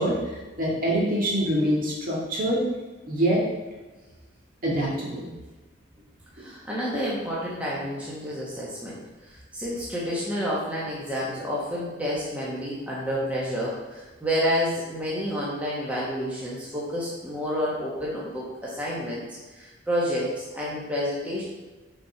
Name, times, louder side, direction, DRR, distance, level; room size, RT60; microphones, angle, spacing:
voice 1, 0.0-2.6 3.0-3.4 4.6-5.3, right 1 dB, 45° right, -4 dB, 2.0 m, -25 dB
voice 2, 6.4-9.0 9.3-19.2 19.6-21.4, equal, 5° right, -7 dB, 1.3 m, -29 dB
6.4 x 4.4 x 5.6 m, 1.2 s
head